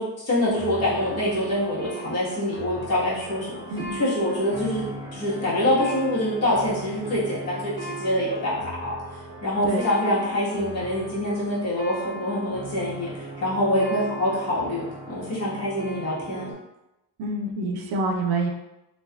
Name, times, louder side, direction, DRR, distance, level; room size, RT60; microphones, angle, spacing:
voice 1, 0.0-3.5 3.9-8.9 9.4-13.1 13.4-16.5, left 1 dB, 45° left, -8 dB, 1.4 m, -25 dB
sound 1, 0.5-16.5, right 2 dB, 15° right, 1.0 m, -38 dB
voice 2, 17.2-18.5, right 2 dB, 85° right, 2 dB, 0.6 m, -27 dB
3.2 x 2.5 x 2.3 m, 0.91 s
cardioid pair, 130°, 36 cm